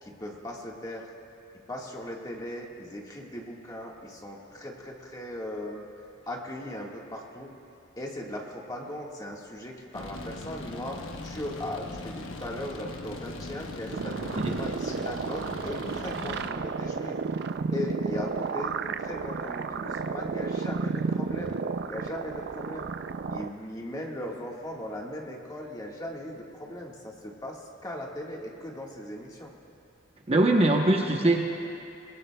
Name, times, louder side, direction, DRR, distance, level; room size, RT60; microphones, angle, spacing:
voice 1, 0.0-1.1 1.7-5.9 6.3-7.5 8.0-17.2 17.7-21.6 21.9-22.9 23.3-29.5, left 1 dB, 20° left, -1 dB, 1.6 m, -38 dB
sound 1, 9.9-16.5, left 2 dB, 80° left, 1.1 m, -40 dB
sound 2, 13.9-23.5, right 5 dB, 55° right, 0.4 m, -32 dB
voice 2, 30.3-31.5, right 2 dB, 30° right, 1 dB, 0.9 m, -22 dB
22.5 x 20.0 x 2.3 m, 2.8 s
head